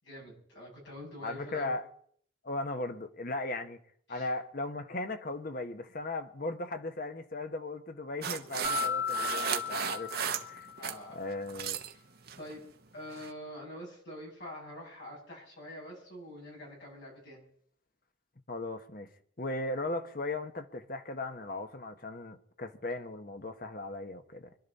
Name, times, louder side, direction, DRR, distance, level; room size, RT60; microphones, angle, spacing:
voice 1, 0.0-1.8 4.1-4.3 10.8-11.2 11.9-12.0 12.4-12.6 12.9-17.4, left 1 dB, 60° left, 7.5 m, -45 dB
voice 2, 1.2-1.9 2.4-3.8 4.1-10.7 11.1-11.8 18.5-19.1 19.4-24.5, left 2 dB, 45° left, 1.2 m, -37 dB
sound 1, 8.2-11.0 11.3-11.9 12.3-12.5 13.1-13.3, right 8 dB, 50° right, 1.0 m, -35 dB
Mallet percussion, 8.6-11.0, left 7 dB, 15° right, 6.9 m, -35 dB
25.0 x 11.5 x 4.2 m
head